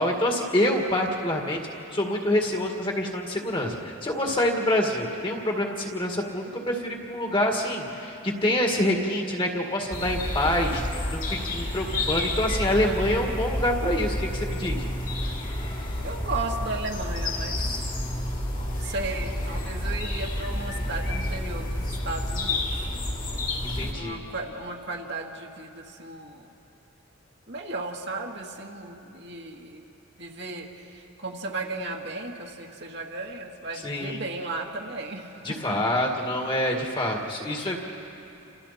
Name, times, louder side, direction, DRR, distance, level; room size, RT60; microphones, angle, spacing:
voice 1, 0.0-1.6 1.9-10.8 11.1-14.9 23.6-24.2 33.8-34.2 35.4-37.8, left 1 dB, 25° left, 1 dB, 2.0 m, -26 dB
sound 1, 9.9-23.9, left 1 dB, 40° left, 2.3 m, -30 dB
voice 2, 16.0-17.8 18.5-22.6 23.9-26.5 27.5-29.9 30.2-35.8, right 2 dB, 55° right, 0 dB, 1.9 m, -35 dB
29.0 x 27.5 x 4.3 m, 3.0 s
head